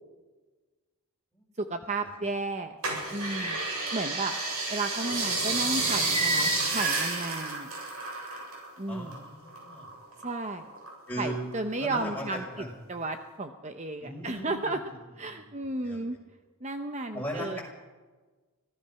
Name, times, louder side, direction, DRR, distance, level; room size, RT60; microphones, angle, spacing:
voice 1, 1.6-2.8 3.1-3.6 3.9-4.3 4.7-7.7 8.8-9.2 10.2-10.7 11.2-14.8 15.2-16.2 16.6-17.6, right 2 dB, 30° right, 7 dB, 0.9 m, -33 dB
sound 1, 2.8-8.7 8.9-10.2 10.7-11.5 12.0-12.1, right 3 dB, 80° right, 7.9 m, -30 dB
voice 2, 8.9-9.9 11.1-11.4 11.8-12.7 14.0-15.0 15.3-15.4 15.8-16.0 17.1-17.6, equal, 5° left, -2 dB, 6.1 m, -38 dB
25.5 x 17.5 x 5.8 m, 1.3 s
head